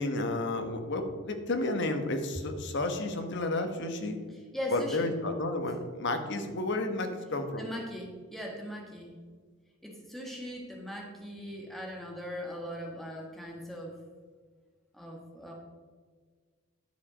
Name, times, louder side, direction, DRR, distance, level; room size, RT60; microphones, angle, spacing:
voice 1, 0.0-4.2 4.7-7.6, left 2 dB, 55° left, 6 dB, 1.1 m, -31 dB
voice 2, 4.3-5.1 7.6-9.2 9.8-14.0 14.9-15.5, equal, ahead, -1 dB, 1.4 m, -39 dB
10.5 x 7.5 x 5.0 m, 1.5 s
head